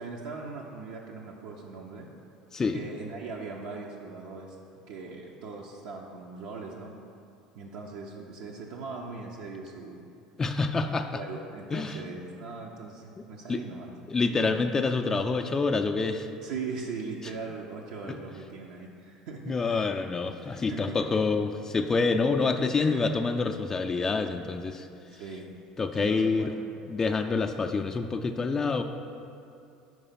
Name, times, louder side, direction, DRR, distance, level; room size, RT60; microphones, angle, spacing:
voice 1, 0.0-2.1 2.7-4.6 4.9-6.9 7.5-10.1 11.1-13.9 16.4-19.9 20.4-21.0 22.8-23.0 25.1-25.5 25.9-26.5, right 4 dB, 70° right, -1 dB, 0.5 m, -40 dB
voice 2, 2.5-2.8 10.4-11.2 11.7-12.0 13.5-13.6 14.1-16.3 18.0-18.2 19.5-24.9 25.8-26.5 26.9-28.8, left 4 dB, 25° left, 5 dB, 0.3 m, -27 dB
4.9 x 4.6 x 5.6 m, 2.5 s
hypercardioid pair, 75°, 2 cm